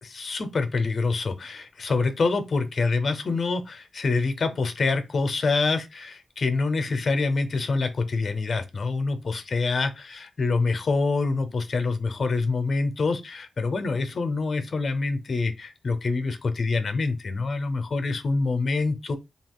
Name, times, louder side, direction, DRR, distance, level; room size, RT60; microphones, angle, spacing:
voice 1, 0.0-19.2, left 3 dB, 55° left, 0.7 m, -26 dB
2.7 x 2.4 x 3.6 m
cardioid pair, 85°, 0 cm